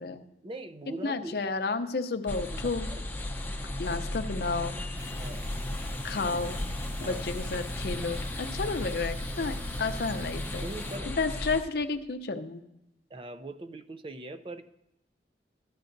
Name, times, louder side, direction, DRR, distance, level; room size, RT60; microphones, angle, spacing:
voice 1, 0.4-1.4 2.5-2.6 2.9-3.0 5.2-5.5 7.0-7.3 10.6-11.1 13.1-14.6, right 2 dB, 30° right, 10 dB, 0.5 m, -41 dB
voice 2, 1.0-2.9 3.8-4.8 6.0-6.6 7.0-10.7 11.1-12.6, left 4 dB, 60° left, 8 dB, 0.6 m, -31 dB
sound 1, 2.3-11.6, left 1 dB, 10° left, 0.6 m, -36 dB
sound 2, 5.0-11.0, equal, 10° right, 1.0 m, -41 dB
14.0 x 10.5 x 2.6 m, 0.89 s
head